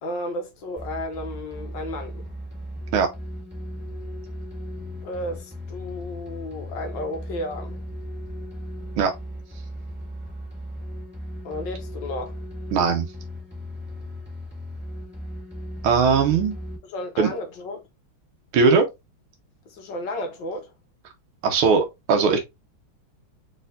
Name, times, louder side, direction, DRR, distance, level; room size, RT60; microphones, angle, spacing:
voice 1, 0.0-2.3 5.0-7.8 11.4-12.4 16.8-17.8 19.7-20.7, left 1 dB, 65° left, 1.6 m, -33 dB
sound 1, 0.8-16.8, equal, 5° right, 1.8 m, -36 dB
voice 2, 12.7-13.1 15.8-16.6 17.2-17.3 18.5-18.9 21.4-22.4, right 5 dB, 90° right, 1.7 m, -19 dB
4.3 x 4.2 x 2.5 m
omnidirectional pair, 2.3 m